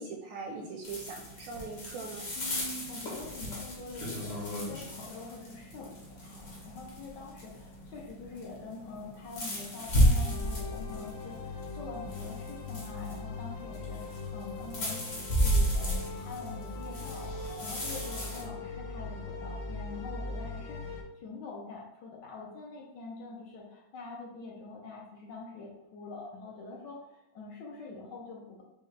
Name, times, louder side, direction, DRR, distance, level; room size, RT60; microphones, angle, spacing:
voice 1, 0.0-2.2, right 4 dB, 75° right, 1 dB, 1.1 m, -41 dB
sound 1, 0.8-18.4, equal, 45° left, 0.9 m, -34 dB
voice 2, 2.4-28.6, left 3 dB, 70° left, -2 dB, 1.2 m, -45 dB
sound 2, 10.1-21.0, left 3 dB, 85° left, 1.5 m, -41 dB
5.4 x 2.3 x 3.2 m, 0.86 s
omnidirectional pair, 2.3 m